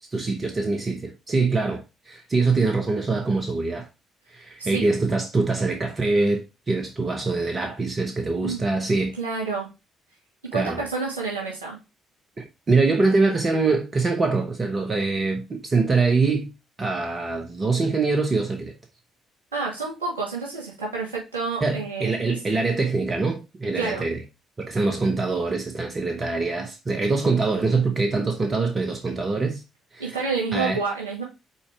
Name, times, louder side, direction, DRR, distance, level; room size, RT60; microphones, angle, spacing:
voice 1, 0.1-3.9 4.3-9.2 10.5-10.8 12.4-16.5 16.8-18.7 21.6-24.2 24.6-29.6 29.9-30.8, right 3 dB, 35° right, 1.1 m, -24 dB
voice 2, 9.2-9.7 10.5-11.8 19.5-22.3 23.7-24.0 30.0-31.2, right 4 dB, 75° right, 2.9 m, -29 dB
5.6 x 4.2 x 4.7 m
figure-of-eight pair, 45°, 0 cm